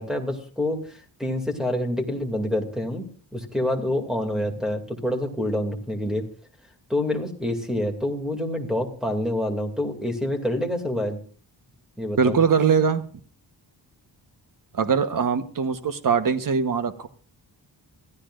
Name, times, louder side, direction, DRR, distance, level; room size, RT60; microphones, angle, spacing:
voice 1, 0.0-3.1 3.3-6.2 6.9-11.2 12.0-12.4, left 1 dB, ahead, 4 dB, 2.5 m, -27 dB
voice 2, 12.2-13.0 14.7-17.1, right 6 dB, 50° right, 9 dB, 1.2 m, -22 dB
25.5 x 15.0 x 2.5 m, 0.43 s
wide cardioid pair, 155°, 42 cm